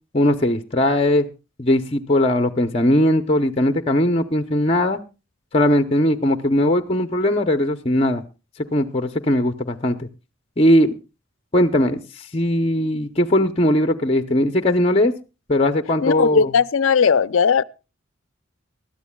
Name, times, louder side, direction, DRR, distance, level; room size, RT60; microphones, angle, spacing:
voice 1, 0.1-1.3 1.6-5.0 5.5-8.2 8.6-10.1 10.6-10.9 11.5-12.0 12.3-15.1 15.5-16.5, left 1 dB, 30° left, 0.7 m, -19 dB
voice 2, 16.0-17.6, left 6 dB, 80° left, 0.5 m, -17 dB
21.0 x 13.0 x 2.3 m
head